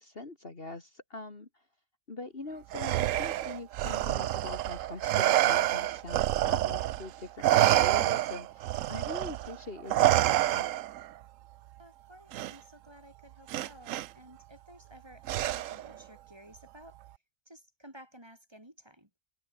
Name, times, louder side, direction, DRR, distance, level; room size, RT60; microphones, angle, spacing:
voice 1, 0.0-1.5 2.1-10.7, left 2 dB, 40° left, 2.6 m, -43 dB
Respiratory sounds, 2.7-7.1 7.4-11.1 12.3-12.5 13.5-14.1 15.3-15.9, right 14 dB, 70° right, 0.9 m, -27 dB
voice 2, 11.8-17.0 17.5-19.1, equal, 15° right, 4.2 m, -54 dB
omnidirectional pair, 1.6 m